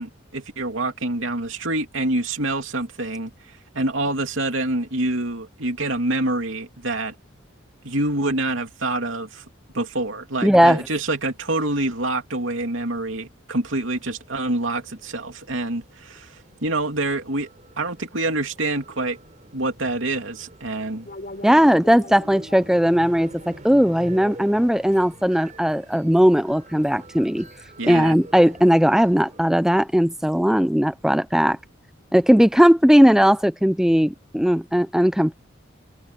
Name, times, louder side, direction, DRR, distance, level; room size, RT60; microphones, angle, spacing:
voice 1, 0.0-3.3 3.7-7.2 7.8-9.4 9.7-17.5 17.8-19.2 19.5-21.1 27.8-28.1, right 2 dB, 75° right, 2.8 m, -26 dB
voice 2, 10.4-10.8 21.4-27.5 27.9-31.6 32.1-35.3, equal, 5° right, 0.5 m, -18 dB
sound 1, 14.0-29.4, right 1 dB, 40° right, 4.0 m, -46 dB
sound 2, 21.1-26.0, left 1 dB, 45° left, 3.8 m, -44 dB
head